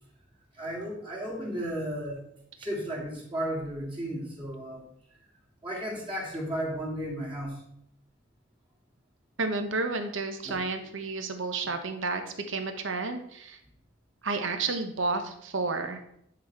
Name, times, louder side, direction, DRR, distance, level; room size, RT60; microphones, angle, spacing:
voice 1, 0.5-2.2 2.6-4.9 5.6-7.6 10.4-10.6, right 1 dB, 25° right, -4 dB, 2.3 m, -34 dB
voice 2, 9.4-13.6 14.2-16.0, right 3 dB, 65° right, 7 dB, 1.0 m, -31 dB
10.0 x 4.1 x 4.7 m, 0.73 s
head